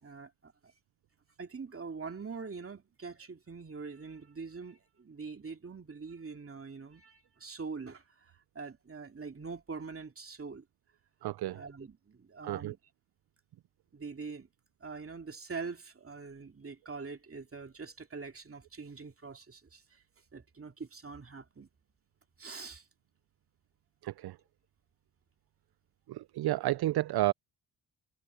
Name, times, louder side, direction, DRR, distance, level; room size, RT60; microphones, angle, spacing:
voice 1, 0.0-0.7 1.4-10.6 11.5-12.8 13.9-14.5 14.8-20.0 20.3-21.7 22.4-22.9, right 4 dB, 30° right, 2.4 m, -44 dB
voice 2, 11.2-11.6 12.4-12.7 24.0-24.4 26.1-27.3, right 15 dB, 60° right, 0.5 m, -31 dB
cardioid pair, 70°, 43 cm